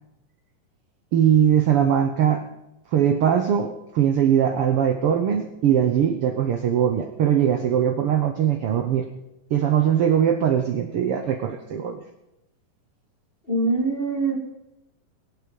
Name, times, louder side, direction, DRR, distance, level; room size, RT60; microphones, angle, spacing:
voice 1, 1.1-2.4 2.9-9.1 9.5-12.0, right 9 dB, 75° right, 6 dB, 1.2 m, -21 dB
voice 2, 13.5-14.3, right 3 dB, 25° left, 1 dB, 1.2 m, -23 dB
24.0 x 8.5 x 5.4 m, 0.91 s
omnidirectional pair, 3.9 m